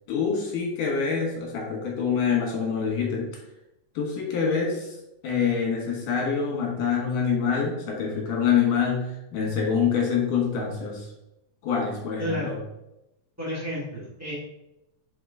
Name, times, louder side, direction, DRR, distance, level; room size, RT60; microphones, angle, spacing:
voice 1, 0.1-3.3 4.0-5.0 5.2-11.1 11.6-12.6, left 6 dB, 70° left, -1 dB, 2.9 m, -26 dB
voice 2, 12.2-12.5 13.4-14.3, equal, 10° right, -9 dB, 0.8 m, -31 dB
5.4 x 4.9 x 3.7 m, 0.90 s
omnidirectional pair, 4.1 m